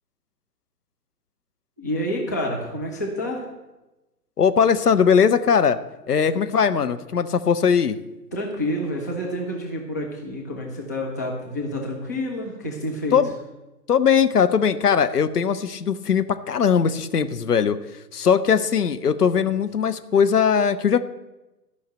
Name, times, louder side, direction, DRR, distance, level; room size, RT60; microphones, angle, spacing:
voice 1, 1.8-3.5 8.3-13.2, left 1 dB, 10° left, -1 dB, 0.5 m, -28 dB
voice 2, 4.4-5.8 6.1-8.0 13.1-13.3 13.9-17.8 18.1-21.0, left 7 dB, 65° left, 11 dB, 0.8 m, -20 dB
13.0 x 5.7 x 7.6 m, 1.0 s
figure-of-eight pair, 125°, 50 cm